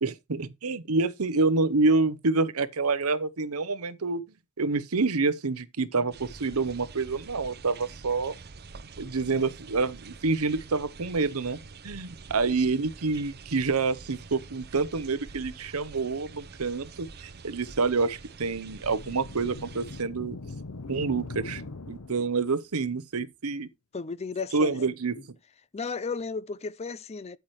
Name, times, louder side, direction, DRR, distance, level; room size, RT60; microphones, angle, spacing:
voice 1, 0.0-4.2 4.6-8.3 9.0-11.6 11.8-20.4 20.9-21.6 21.9-23.7 24.5-25.1, right 3 dB, 85° right, 0.9 m, -27 dB
sound 1, 6.1-20.0, right 4 dB, 45° right, 0.7 m, -46 dB
sound 2, 18.7-22.6, left 3 dB, 85° left, 1.0 m, -41 dB
voice 2, 23.9-24.9 25.1-25.2 25.7-27.4, left 4 dB, 30° left, 0.5 m, -34 dB
9.4 x 8.7 x 3.1 m
head